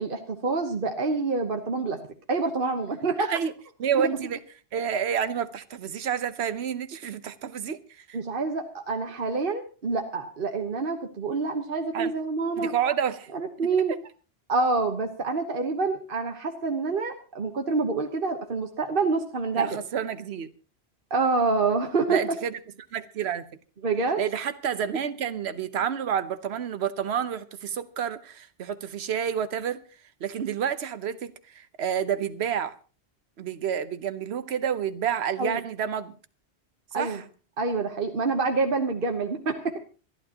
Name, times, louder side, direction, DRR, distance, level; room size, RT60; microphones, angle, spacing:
voice 1, 0.0-2.0 2.3-3.3 3.9-4.1 8.1-12.7 13.3-13.9 14.5-19.7 21.1-22.2 23.8-24.2 35.4-35.6 36.9-37.2 37.6-39.8, right 3 dB, 55° right, 1.3 m, -27 dB
voice 2, 3.8-4.4 4.7-8.2 11.9-12.1 12.6-13.3 19.5-20.5 22.1-22.6 22.9-23.5 24.2-29.8 30.2-32.7 33.4-36.2 36.9-37.2, right 8 dB, 75° right, 1.1 m, -29 dB
26.5 x 11.0 x 2.9 m
omnidirectional pair, 1.1 m